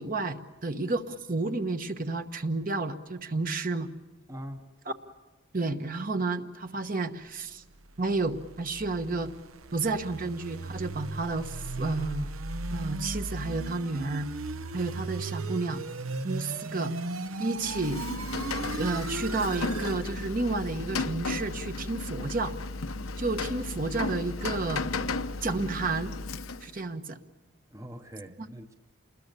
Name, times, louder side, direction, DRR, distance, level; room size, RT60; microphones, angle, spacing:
voice 1, 0.0-3.9 5.5-7.6 8.0-9.3 9.7-12.3 12.7-14.3 14.7-15.8 16.2-16.9 17.4-18.0 18.7-22.5 23.2-24.8 25.4-26.1 26.6-27.2, right 3 dB, 40° right, 8 dB, 1.1 m, -31 dB
voice 2, 4.3-4.7 14.6-14.8 27.7-28.7, equal, 15° right, 6 dB, 0.8 m, -43 dB
sound 1, 7.8-20.0, right 3 dB, 90° right, 1.0 m, -37 dB
Rain, 17.5-26.8, left 3 dB, 85° left, 0.9 m, -34 dB
28.5 x 21.0 x 6.8 m, 1.2 s
head